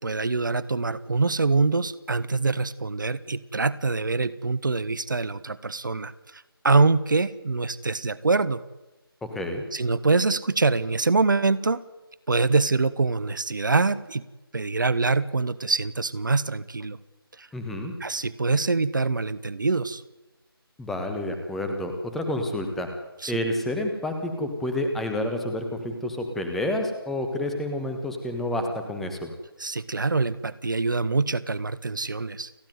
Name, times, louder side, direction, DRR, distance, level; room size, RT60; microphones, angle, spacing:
voice 1, 0.0-8.6 9.7-11.8 12.3-14.2 14.5-17.0 17.4-17.5 18.0-20.0 23.2-23.4 29.6-32.7, right 3 dB, 55° right, 18 dB, 1.1 m, -24 dB
voice 2, 9.3-9.6 17.5-17.9 20.8-22.9 23.3-29.3, left 1 dB, ahead, 5 dB, 1.4 m, -29 dB
29.5 x 10.5 x 9.4 m, 1.0 s
figure-of-eight pair, 160°, 13 cm